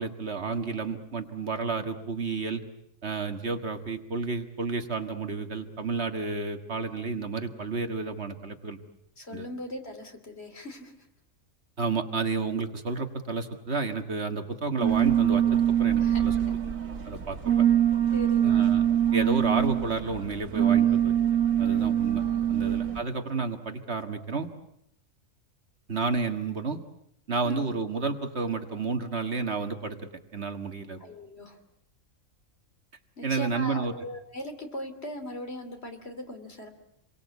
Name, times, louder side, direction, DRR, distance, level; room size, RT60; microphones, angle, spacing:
voice 1, 0.0-2.6 3.0-8.8 9.3-9.4 11.8-16.3 17.1-17.4 18.4-18.8 19.1-21.1 21.6-22.2 22.5-24.5 25.9-26.8 27.3-30.0 30.3-31.0 33.2-33.9, right 4 dB, 50° right, 6 dB, 2.0 m, -31 dB
voice 2, 9.2-10.9 16.0-16.2 16.5-16.6 18.1-18.7 21.6-22.0 22.5-22.9 27.4-27.7 31.0-31.6 33.2-36.7, left 1 dB, 50° left, 6 dB, 3.2 m, -39 dB
sound 1, 14.8-23.0, right 10 dB, 75° right, 2.3 m, -24 dB
28.5 x 23.0 x 8.3 m, 0.78 s
omnidirectional pair, 1.4 m